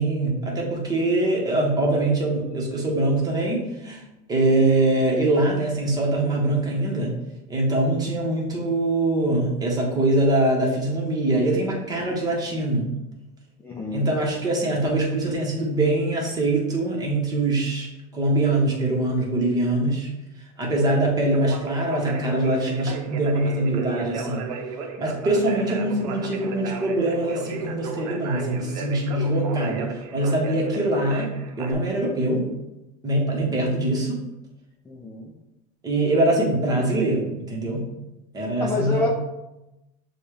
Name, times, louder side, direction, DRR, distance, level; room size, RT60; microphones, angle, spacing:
voice 1, 0.0-4.0 4.3-7.1 7.5-12.9 13.9-17.9 18.1-20.1 20.6-24.4 25.0-31.3 31.6-32.4 33.0-34.2 35.8-37.9 38.3-39.1, right 2 dB, 20° right, -2 dB, 1.3 m, -23 dB
voice 2, 13.6-14.1 33.3-33.6 34.9-35.3 38.6-39.1, left 2 dB, 10° left, -3 dB, 0.5 m, -28 dB
Conversation, 21.2-31.7, right 4 dB, 80° right, 0.7 m, -34 dB
6.6 x 2.4 x 3.3 m, 0.96 s
supercardioid pair, 125°, 19 cm